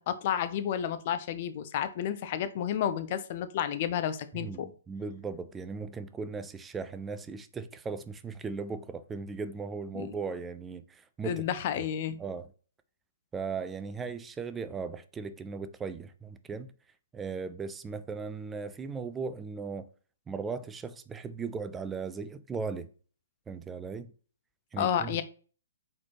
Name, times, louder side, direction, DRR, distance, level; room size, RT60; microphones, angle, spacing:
voice 1, 0.0-4.7 9.9-10.1 11.2-12.2 24.8-25.2, left 9 dB, 40° left, 0.5 m, -31 dB
voice 2, 4.3-11.5 11.8-11.9 12.2-12.5 13.3-16.7 17.1-19.9 20.3-22.9 23.5-24.1 24.7-25.2, right 5 dB, 10° right, 0.4 m, -37 dB
4.4 x 4.1 x 2.8 m
figure-of-eight pair, 125°, 0 cm